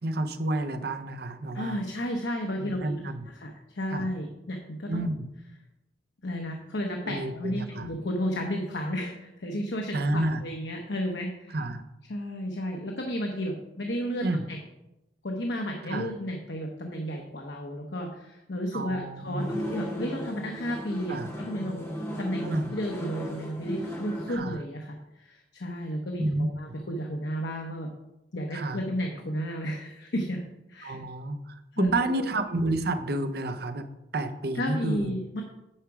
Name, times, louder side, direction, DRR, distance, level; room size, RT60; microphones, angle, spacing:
voice 1, 0.0-1.8 2.6-3.3 3.9-4.1 4.9-5.3 7.0-7.9 9.9-10.4 11.5-11.8 14.2-14.5 15.9-16.1 18.7-19.6 21.1-21.3 22.4-22.7 24.3-24.6 26.2-26.5 28.5-28.8 30.8-33.9 34.1-35.2, right 2 dB, 60° right, 8 dB, 0.7 m, -30 dB
voice 2, 1.5-3.1 3.3-5.1 6.2-11.6 12.1-14.6 15.2-21.9 22.2-27.9 28.3-30.4 30.7-31.0 31.7-32.3 34.5-35.4, equal, 85° left, 2 dB, 1.0 m, -33 dB
sound 1, 19.4-24.4, equal, 15° left, 1.7 m, -35 dB
10.0 x 4.7 x 4.9 m, 0.92 s
head